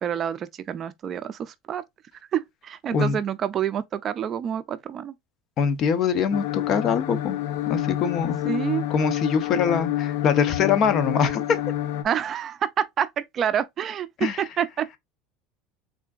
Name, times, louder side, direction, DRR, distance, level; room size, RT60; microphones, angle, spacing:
voice 1, 0.0-1.8 2.3-5.1 8.4-8.8 12.0-15.0, right 9 dB, 35° right, 0.4 m, -28 dB
voice 2, 5.6-7.4 7.7-8.4 8.9-11.6 14.2-14.4, left 6 dB, 40° left, 0.7 m, -23 dB
sound 1, 6.3-12.0, left 13 dB, 80° left, 0.5 m, -28 dB
3.7 x 3.4 x 2.3 m
supercardioid pair, 130°, 0 cm